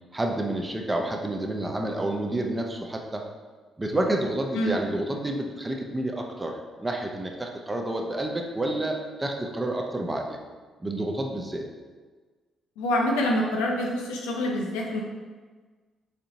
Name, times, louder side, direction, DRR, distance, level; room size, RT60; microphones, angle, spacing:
voice 1, 0.1-3.2 3.8-10.4 10.8-11.6, right 1 dB, 25° right, 2 dB, 0.6 m, -29 dB
voice 2, 4.5-5.0 12.8-15.0, left 1 dB, 80° left, -1 dB, 0.5 m, -26 dB
4.2 x 2.8 x 2.6 m, 1.4 s
hypercardioid pair, 45°, 0 cm